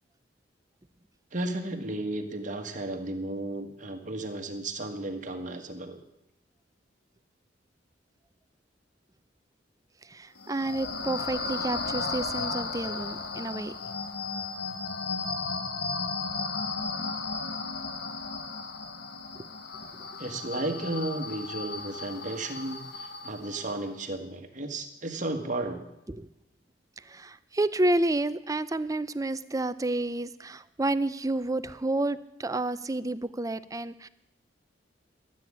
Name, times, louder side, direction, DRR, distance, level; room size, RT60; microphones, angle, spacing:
voice 1, 1.3-6.0 20.2-25.9, right 2 dB, 45° right, 5 dB, 1.6 m, -34 dB
voice 2, 10.0-13.7 19.3-19.5 26.1-26.3 27.0-34.1, right 2 dB, 20° right, 14 dB, 0.5 m, -30 dB
sound 1, 10.4-23.8, left 4 dB, 60° left, 1.3 m, -35 dB
12.5 x 8.6 x 9.7 m, 0.88 s
head